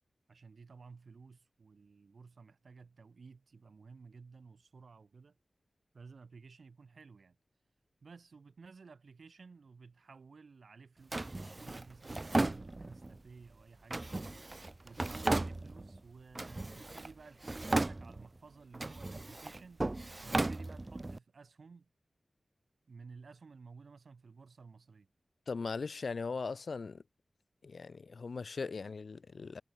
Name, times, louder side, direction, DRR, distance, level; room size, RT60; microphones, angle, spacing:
voice 1, 0.3-5.4 5.9-7.4 8.0-14.1 14.8-19.9 20.2-21.9 22.9-25.1, right 4 dB, 75° right, 2.2 m, -55 dB
Drawer open or close, 11.1-13.2 13.9-16.0 16.3-17.1 17.4-18.4 18.7-21.2, right 2 dB, 35° right, 0.4 m, -36 dB
voice 2, 25.5-27.0 27.6-29.6, left 4 dB, 75° left, 0.7 m, -39 dB
wide cardioid pair, 55°, 0 cm